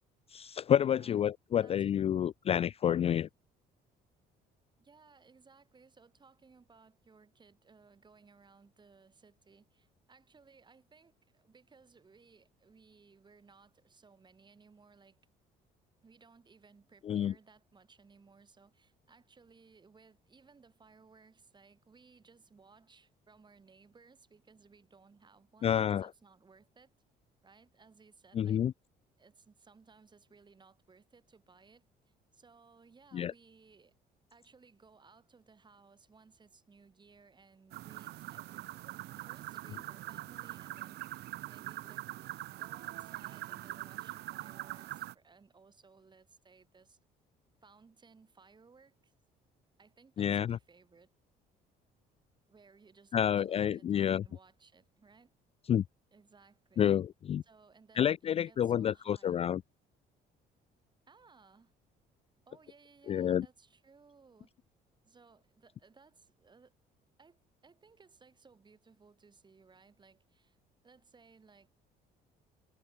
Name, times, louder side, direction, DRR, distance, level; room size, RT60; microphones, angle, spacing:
voice 1, 0.3-3.3 17.1-17.3 25.6-26.1 28.3-28.7 33.1-33.3 50.2-50.6 53.1-54.2 55.7-55.8 56.8-57.4 58.0-59.6 63.1-63.5, left 9 dB, 35° left, 0.3 m, -29 dB
voice 2, 0.9-1.3 1.6-1.9 4.8-15.3 16.0-26.9 27.4-28.6 29.2-33.9 34.3-38.6 39.1-41.0 41.4-42.1 42.4-47.0 47.6-49.1 49.8-51.1 52.5-55.3 56.1-56.9 57.4-59.4 61.1-61.7 62.4-64.5 65.0-66.7 67.2-70.6 70.8-71.7, right 4 dB, 25° right, 5.0 m, -61 dB
sound 1, 37.7-45.1, right 16 dB, 75° right, 0.9 m, -43 dB
cardioid pair, 110°, 17 cm